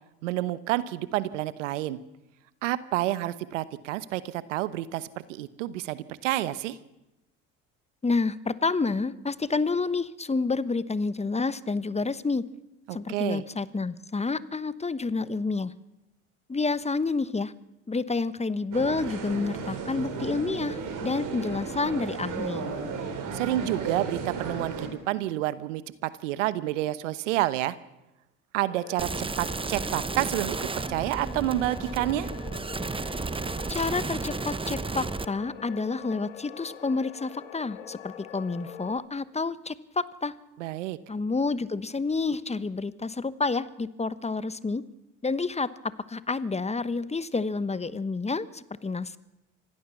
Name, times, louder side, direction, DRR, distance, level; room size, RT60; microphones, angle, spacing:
voice 1, 0.2-2.0 2.6-6.8 12.9-13.4 23.3-27.7 28.5-32.3 40.6-41.0, right 15 dB, 85° right, 16 dB, 1.0 m, -29 dB
voice 2, 8.0-12.4 12.9-15.7 16.5-17.5 17.9-22.7 33.7-40.3 41.1-44.8 45.2-49.2, left 3 dB, 15° left, 16 dB, 1.1 m, -29 dB
sound 1, 18.7-24.9, right 5 dB, 60° right, 5.5 m, -34 dB
sound 2, 28.7-39.0, left 10 dB, 90° left, 1.6 m, -44 dB
sound 3, 29.0-35.2, right 4 dB, 15° right, 0.9 m, -33 dB
25.5 x 17.0 x 7.1 m, 0.96 s
hypercardioid pair, 65°, 36 cm